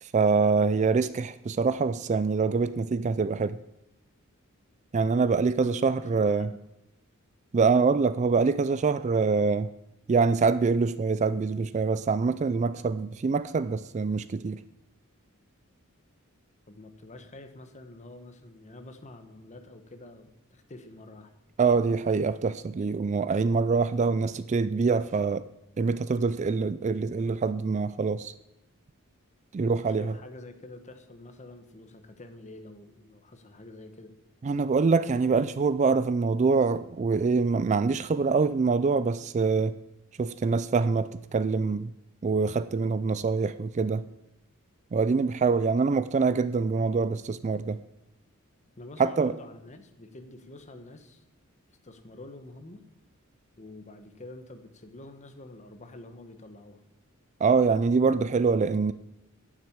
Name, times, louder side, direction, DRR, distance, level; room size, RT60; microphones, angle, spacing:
voice 1, 0.0-3.6 4.9-6.5 7.5-9.7 10.1-14.6 21.6-25.5 25.8-28.3 29.5-30.1 34.4-39.8 40.2-41.9 42.2-44.0 44.9-47.8 49.0-49.3 57.4-58.9, right 4 dB, 30° right, 14 dB, 0.3 m, -25 dB
voice 2, 5.4-6.6 16.7-21.3 29.6-34.1 45.1-45.3 48.8-51.2 51.8-52.8 53.6-56.8, left 2 dB, 35° left, 8 dB, 1.1 m, -47 dB
9.4 x 7.5 x 8.6 m, 0.87 s
head